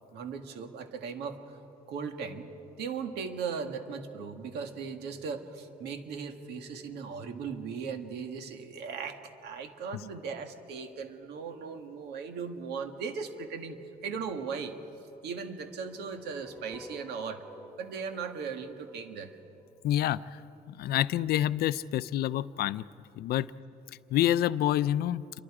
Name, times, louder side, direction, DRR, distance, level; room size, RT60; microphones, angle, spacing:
voice 1, 0.1-1.6 1.9-2.5 2.8-14.7 15.2-17.4 17.8-19.3, right 5 dB, 75° right, 6 dB, 1.9 m, -38 dB
sound 1, 15.7-19.8, equal, 5° left, 1.8 m, -51 dB
voice 2, 19.8-20.2 20.7-22.8 23.2-23.5 24.1-25.2, left 12 dB, 70° left, 16 dB, 0.5 m, -27 dB
28.0 x 24.0 x 4.9 m, 2.9 s
cardioid pair, 110°, 17 cm